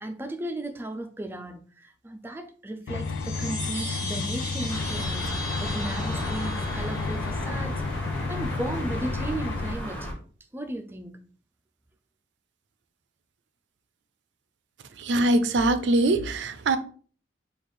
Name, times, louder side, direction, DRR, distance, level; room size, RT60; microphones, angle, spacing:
voice 1, 0.0-10.1 10.5-11.2, right 1 dB, 10° right, 0.3 m, -35 dB
sound 1, 2.9-9.7, left 4 dB, 85° left, 0.4 m, -32 dB
Chime, 2.9-7.6, left 2 dB, 50° left, 1.5 m, -37 dB
sound 2, 4.7-10.1, equal, 5° left, 0.8 m, -34 dB
voice 2, 15.0-16.8, right 2 dB, 75° right, 0.4 m, -22 dB
3.3 x 2.3 x 4.2 m
head